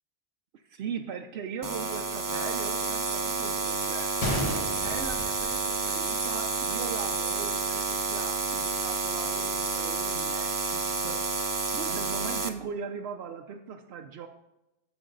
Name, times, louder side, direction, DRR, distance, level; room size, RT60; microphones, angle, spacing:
voice 1, 0.5-4.1 4.8-14.3, right 6 dB, 85° right, 4 dB, 0.9 m, -39 dB
sound 1, 1.6-12.5, right 4 dB, 25° right, 0.5 m, -30 dB
Gunshot gunfire, 4.2-6.2 6.5-6.6 7.3-7.5, equal, 35° left, 1.3 m, -33 dB
12.5 x 5.2 x 3.8 m, 0.95 s
omnidirectional pair, 1.0 m